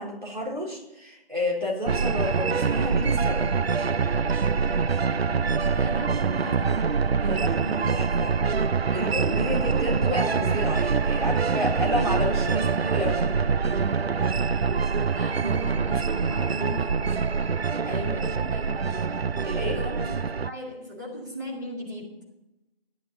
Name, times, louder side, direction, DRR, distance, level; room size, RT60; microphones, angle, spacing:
voice 1, 0.0-3.5 7.2-8.4 8.9-13.3 17.8-18.2 19.5-19.8, left 1 dB, 55° right, -3 dB, 3.9 m, -30 dB
sound 1, 1.9-20.5, right 5 dB, 85° right, 0.5 m, -25 dB
voice 2, 5.7-6.9 15.1-17.1 17.6-18.7 19.5-22.2, left 1 dB, 20° right, -5 dB, 2.1 m, -38 dB
11.5 x 11.0 x 5.2 m, 0.94 s
figure-of-eight pair, 170°, 30 cm